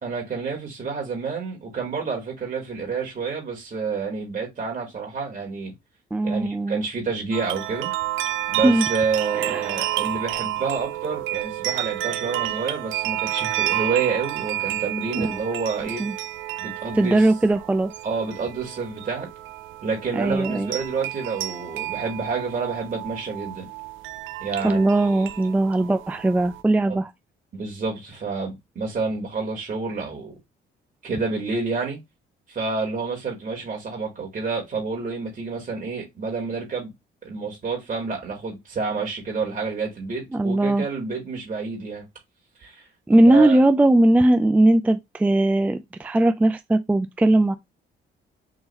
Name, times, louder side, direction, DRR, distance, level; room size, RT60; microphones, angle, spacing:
voice 1, 0.0-5.7 6.2-7.9 8.5-16.0 16.6-17.3 18.0-19.3 19.8-23.7 24.4-24.8 25.1-25.2 26.9-27.0 27.5-30.3 31.0-32.0 32.5-36.9 37.2-42.1 42.6-42.8 43.3-43.6, right 4 dB, 40° right, 1.8 m, -29 dB
voice 2, 6.1-6.8 8.6-8.9 9.4-9.8 15.1-15.4 16.0-16.1 16.9-17.9 20.1-20.7 24.6-27.1 40.3-40.8 43.1-47.5, right 1 dB, 5° right, 0.3 m, -19 dB
sound 1, 7.3-26.6, right 15 dB, 80° right, 0.4 m, -30 dB
3.8 x 2.9 x 4.0 m
cardioid pair, 90°, 20 cm